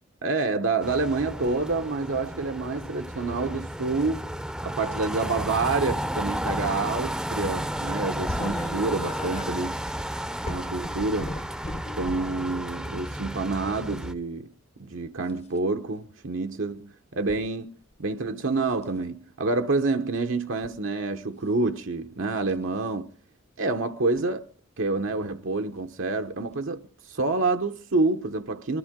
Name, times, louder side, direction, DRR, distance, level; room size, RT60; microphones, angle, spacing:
voice 1, 0.2-4.3 4.6-9.8 10.4-11.4 12.0-14.5 14.8-17.7 18.0-23.1 23.6-24.4 24.8-26.8 27.1-28.8, right 3 dB, 80° right, 1.0 m, -28 dB
sound 1, 0.8-14.1, equal, 5° right, 0.6 m, -32 dB
sound 2, 8.3-12.4 13.1-13.4 15.2-15.6 17.3-17.4 17.9-18.3 18.7-19.0 20.4-20.8 22.4-22.6 24.1-24.3 25.8-25.9 26.5-26.6, left 1 dB, 30° left, 0.7 m, -37 dB
21.5 x 13.0 x 3.7 m
head